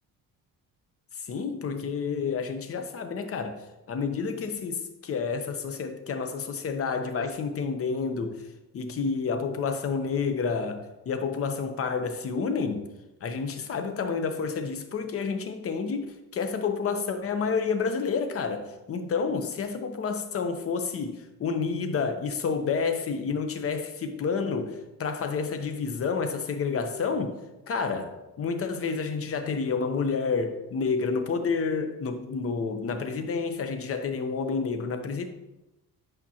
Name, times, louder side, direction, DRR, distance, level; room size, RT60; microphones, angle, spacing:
voice 1, 1.1-8.5 8.7-12.8 13.2-27.4 27.7-35.2, left 5 dB, 40° left, 0.8 m, -29 dB
8.7 x 5.2 x 2.8 m
cardioid pair, 125°, 36 cm